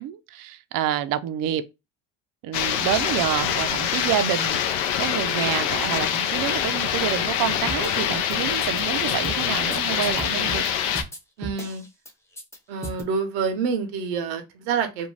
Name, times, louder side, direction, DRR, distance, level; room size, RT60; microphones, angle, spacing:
voice 1, 0.0-1.6 2.4-10.6, right 11 dB, 55° right, 0.5 m, -28 dB
sound 1, 2.5-11.0, left 9 dB, 80° left, 0.6 m, -25 dB
sound 2, 7.7-8.4 8.6-8.8 9.1-10.7 10.9-12.1 12.4-12.6 12.8-13.0, right 1 dB, 5° left, 0.6 m, -35 dB
voice 2, 11.4-11.8 12.7-15.1, right 5 dB, 85° right, 0.8 m, -27 dB
2.6 x 2.2 x 3.1 m
supercardioid pair, 90°, 42 cm